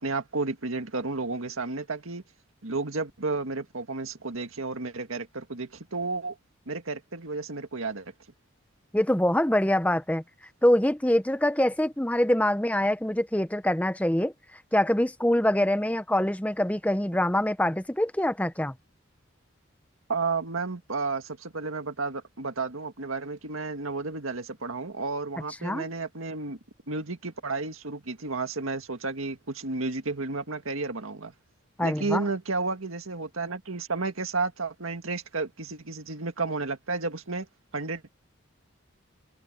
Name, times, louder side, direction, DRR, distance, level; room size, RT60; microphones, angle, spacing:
voice 1, 0.0-2.2 2.6-6.4 6.7-8.1 20.1-26.6 26.9-31.3 31.8-37.5 37.7-38.1, right 3 dB, 90° right, 1.9 m, -32 dB
voice 2, 8.9-10.2 10.6-14.3 14.7-18.7 25.6-25.8 31.8-32.2, left 1 dB, 5° left, 0.8 m, -24 dB
head